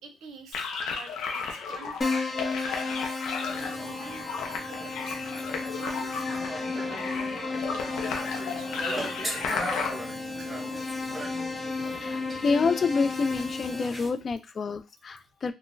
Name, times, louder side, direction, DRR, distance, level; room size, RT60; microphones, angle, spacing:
voice 1, 0.0-5.2 5.7-10.8, right 5 dB, 85° right, 0.7 m, -49 dB
sound 1, 0.5-9.9, left 5 dB, 90° left, 0.7 m, -34 dB
Keyboard (musical), 2.0-13.9, left 3 dB, 20° left, 0.8 m, -34 dB
sound 2, 3.5-14.1, right 1 dB, 20° right, 0.9 m, -39 dB
voice 2, 12.0-15.5, left 4 dB, 45° left, 0.4 m, -28 dB
3.6 x 2.1 x 2.6 m
cardioid pair, 90°, 0 cm